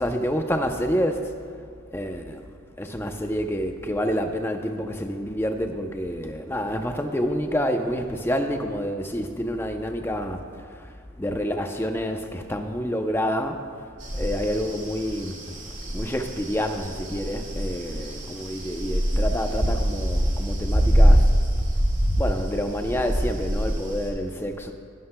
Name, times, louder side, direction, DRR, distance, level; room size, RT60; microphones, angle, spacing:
voice 1, 0.0-1.4 1.9-2.4 2.8-10.4 10.7-10.9 11.2-13.6 14.1-15.3 15.9-21.2 22.2-24.7, equal, 10° left, 5 dB, 0.6 m, -28 dB
sound 1, 14.0-24.1, equal, 35° right, 2.3 m, -24 dB
21.0 x 11.5 x 2.2 m, 2.2 s
head